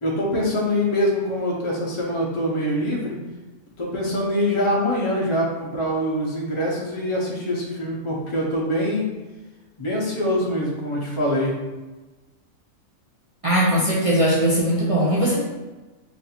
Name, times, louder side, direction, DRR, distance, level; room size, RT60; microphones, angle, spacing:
voice 1, 0.0-3.2 3.8-9.1 9.8-11.5, equal, 30° left, -3 dB, 0.7 m, -24 dB
voice 2, 13.4-15.4, right 1 dB, 45° right, -7 dB, 0.4 m, -19 dB
3.2 x 2.6 x 4.2 m, 1.2 s
omnidirectional pair, 1.5 m